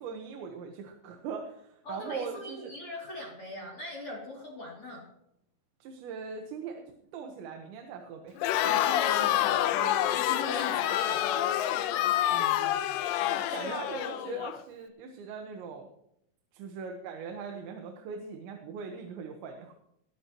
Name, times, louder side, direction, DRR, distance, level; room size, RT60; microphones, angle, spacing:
voice 1, 0.0-2.7 5.8-6.8 7.1-8.6 12.3-13.0 13.5-15.9 16.5-19.7, right 5 dB, 80° right, 3 dB, 3.6 m, -41 dB
voice 2, 1.9-5.1 8.6-11.9 13.2-13.8, left 2 dB, 35° left, -3 dB, 3.7 m, -41 dB
Crowd, 8.4-14.6, left 12 dB, 85° left, 3.0 m, -27 dB
21.0 x 13.0 x 3.1 m, 0.75 s
omnidirectional pair, 5.1 m